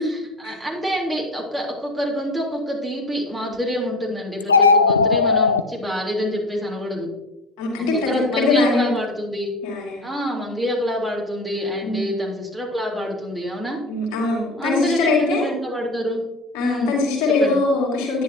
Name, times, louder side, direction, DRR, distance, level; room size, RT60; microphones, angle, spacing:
voice 1, 0.0-7.1 8.1-9.5 10.0-13.8 14.6-16.2 16.6-17.0 17.4-17.6, equal, 15° right, -2 dB, 3.5 m, -26 dB
sound 1, 4.4-5.6, left 4 dB, 85° left, 0.3 m, -16 dB
voice 2, 7.6-8.9 9.6-10.1 11.8-12.1 13.9-15.5 16.5-18.2, left 3 dB, 65° left, -2 dB, 2.7 m, -21 dB
10.5 x 10.5 x 2.8 m, 0.97 s
figure-of-eight pair, 50°, 0 cm